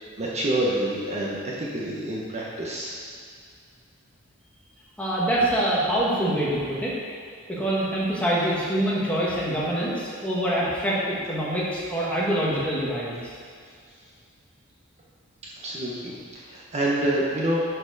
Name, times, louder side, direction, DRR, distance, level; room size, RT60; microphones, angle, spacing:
voice 1, 0.2-2.9 15.6-17.6, right 1 dB, 35° right, -5 dB, 1.0 m, -27 dB
voice 2, 5.0-6.9 7.5-13.2, right 1 dB, 5° left, -7 dB, 1.6 m, -25 dB
11.5 x 4.5 x 4.1 m, 2.2 s
head